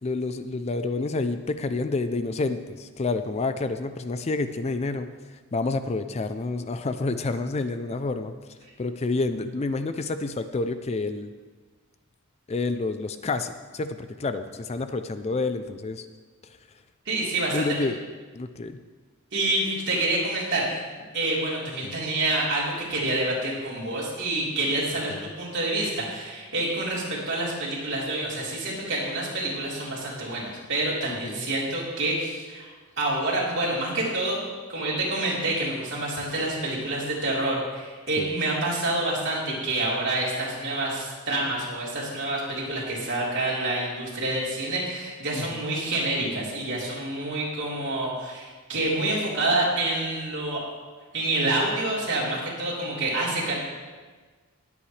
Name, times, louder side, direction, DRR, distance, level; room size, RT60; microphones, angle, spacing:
voice 1, 0.0-5.1 5.5-8.3 8.8-11.3 12.5-16.1 17.5-18.0 18.3-18.8 21.8-21.9 25.1-25.3 31.1-31.5 38.2-38.3 45.3-45.4, left 3 dB, 30° left, 10 dB, 0.4 m, -29 dB
voice 2, 17.1-17.7 19.3-20.8 21.1-32.7 33.0-34.4 34.7-50.6 51.1-53.5, right 2 dB, 55° right, -6 dB, 3.8 m, -27 dB
20.0 x 8.5 x 3.3 m, 1.4 s
head